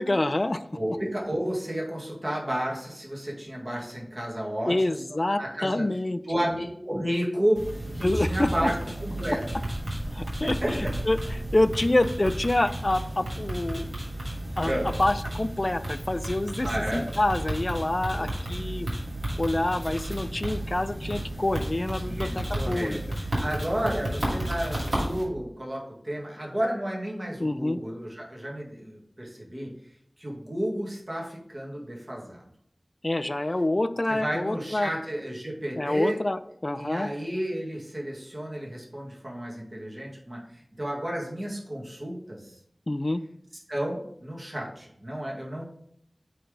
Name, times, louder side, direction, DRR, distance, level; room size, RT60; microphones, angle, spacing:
voice 1, 0.0-0.6 4.7-6.2 8.0-8.7 10.1-13.9 14.6-14.7 15.0-18.9 19.4-23.0 27.4-27.8 33.0-34.9 35.8-37.1 42.9-43.2, left 1 dB, 45° left, 12 dB, 0.4 m, -27 dB
voice 2, 0.7-5.0 5.3-5.8 6.2-7.6 7.9-9.4 10.4-10.9 14.6-14.9 16.6-17.1 18.1-18.3 22.0-22.3 22.5-23.0 23.4-29.7 30.2-32.4 34.1-36.2 36.8-42.6 43.7-45.6, equal, 40° right, -3 dB, 1.9 m, -32 dB
sound 1, 7.5-25.2, right 1 dB, 80° right, 2.4 m, -32 dB
8.7 x 3.4 x 3.9 m, 0.69 s
wide cardioid pair, 40°, 0 cm